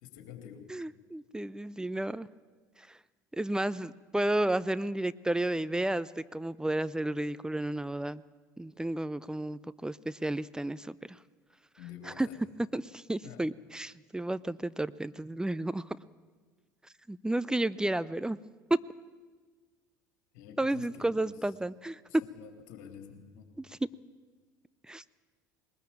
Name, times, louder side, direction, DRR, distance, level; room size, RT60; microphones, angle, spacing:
voice 1, 0.0-0.6 11.8-12.4 13.2-13.4 20.3-21.4 22.1-23.5, left 9 dB, 65° left, 6 dB, 3.4 m, -48 dB
voice 2, 0.7-2.3 2.9-3.0 3.3-8.2 8.6-11.2 12.1-12.3 12.7-15.9 17.1-18.4 18.7-18.8 20.6-22.2 23.6-23.8 24.9-25.0, right 1 dB, 5° right, 16 dB, 0.6 m, -32 dB
21.0 x 20.0 x 8.8 m, 1.4 s
hypercardioid pair, 65°, 10 cm